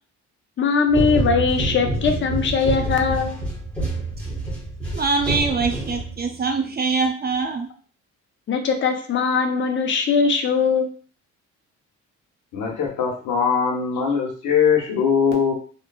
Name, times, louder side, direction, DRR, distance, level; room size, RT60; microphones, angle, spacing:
voice 1, 0.6-3.4 8.5-10.9, left 5 dB, 40° left, 4 dB, 0.5 m, -20 dB
sound 1, 0.9-6.4, right 2 dB, 5° left, 0.9 m, -27 dB
voice 2, 4.9-7.7, right 4 dB, 35° right, 4 dB, 0.5 m, -23 dB
voice 3, 12.5-15.5, left 6 dB, 80° left, -1 dB, 0.9 m, -21 dB
3.1 x 2.0 x 2.3 m, 0.41 s
cardioid pair, 90°, 30 cm